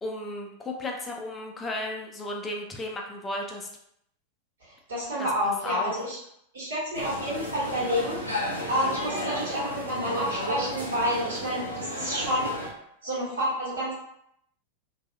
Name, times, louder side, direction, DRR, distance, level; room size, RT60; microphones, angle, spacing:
voice 1, 0.0-3.7 5.2-5.9, left 2 dB, 15° left, 1 dB, 0.4 m, -34 dB
voice 2, 4.7-6.2 6.5-8.2 8.7-12.5 13.0-13.9, equal, 65° right, -7 dB, 1.3 m, -29 dB
sound 1, 6.9-12.7, equal, 85° right, 0.6 m, -33 dB
2.7 x 2.3 x 2.4 m, 0.75 s
figure-of-eight pair, 90°, 0 cm